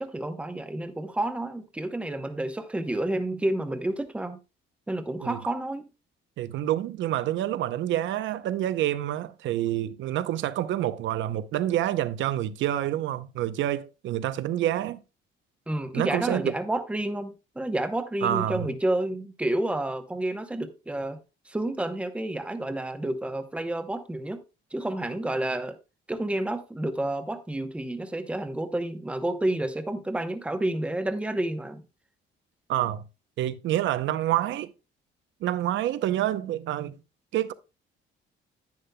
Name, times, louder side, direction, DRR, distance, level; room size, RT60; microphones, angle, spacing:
voice 1, 0.0-4.4 4.9-5.9 15.7-21.2 21.5-24.4 24.7-25.8 26.1-31.8, right 1 dB, 5° right, 0.8 m, -30 dB
voice 2, 6.4-15.0 15.9-16.5 18.2-18.7 32.7-33.0 33.4-34.7 35.4-36.9 37.3-37.5, right 12 dB, 70° right, 0.7 m, -27 dB
10.5 x 9.5 x 2.2 m
cardioid pair, 155°, 20 cm